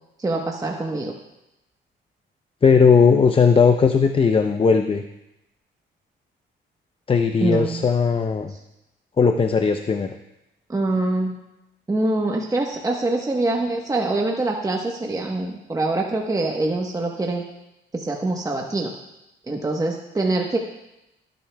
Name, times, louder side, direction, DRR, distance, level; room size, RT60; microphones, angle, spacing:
voice 1, 0.2-1.1 7.4-7.8 10.7-11.4 11.9-17.4 17.9-18.9 19.5-20.6, right 2 dB, 15° right, 1 dB, 1.1 m, -24 dB
voice 2, 2.6-5.0 7.1-8.5 9.2-10.1, left 5 dB, 30° left, 7 dB, 0.5 m, -17 dB
17.0 x 9.2 x 2.3 m, 0.92 s
cardioid pair, 90°, 20 cm